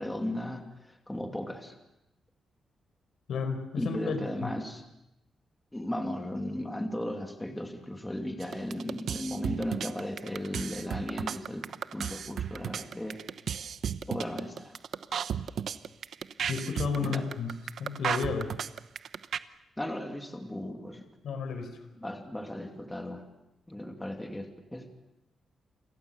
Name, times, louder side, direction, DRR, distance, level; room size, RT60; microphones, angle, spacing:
voice 1, 0.0-1.8 3.8-4.8 5.7-13.2 14.1-14.7 17.0-17.2 19.8-21.1 22.0-23.2 23.7-24.9, left 1 dB, 10° left, 3 dB, 2.6 m, -36 dB
voice 2, 3.3-4.5 16.5-17.5 17.8-18.5 21.2-21.8, left 5 dB, 80° left, 8 dB, 4.8 m, -32 dB
sound 1, 8.4-19.4, right 8 dB, 65° right, 0.9 m, -34 dB
29.5 x 23.5 x 6.9 m, 0.89 s
wide cardioid pair, 140°, 0 cm